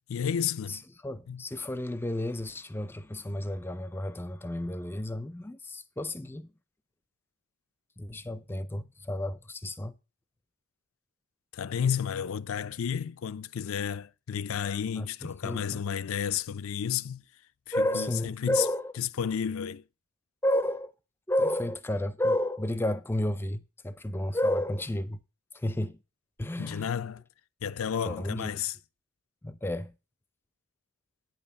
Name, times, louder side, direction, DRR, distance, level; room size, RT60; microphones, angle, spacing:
voice 1, 0.1-0.8 1.3-1.4 11.5-17.2 17.7-18.6 19.0-19.8 26.6-27.2 27.6-28.7, left 8 dB, 85° left, 0.4 m, -32 dB
voice 2, 0.7-6.5 8.0-9.9 15.0-15.8 17.7-18.9 20.4-20.9 21.3-25.2 25.5-26.0 26.4-26.9 28.0-28.6 29.4-29.9, left 1 dB, 10° left, 0.4 m, -31 dB
9.1 x 5.6 x 6.9 m
head